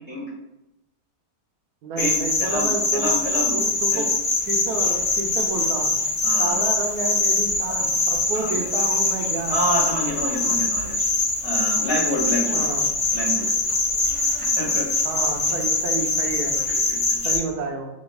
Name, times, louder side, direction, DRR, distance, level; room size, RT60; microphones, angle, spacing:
voice 1, 1.8-3.2 3.5-4.1 4.5-6.0 6.4-9.6 10.4-10.6 12.5-12.8 15.0-16.6 17.2-17.9, right 3 dB, 85° right, 2 dB, 1.2 m, -30 dB
sound 1, 2.0-17.4, left 3 dB, 50° left, 0.3 m, -23 dB
voice 2, 2.9-3.5 3.9-4.0 6.2-6.6 8.3-8.5 9.5-11.0 11.4-12.6 13.1-13.5 14.4-14.9 16.7-17.2, equal, 20° left, -7 dB, 1.2 m, -27 dB
5.9 x 2.3 x 3.2 m, 0.90 s
omnidirectional pair, 1.6 m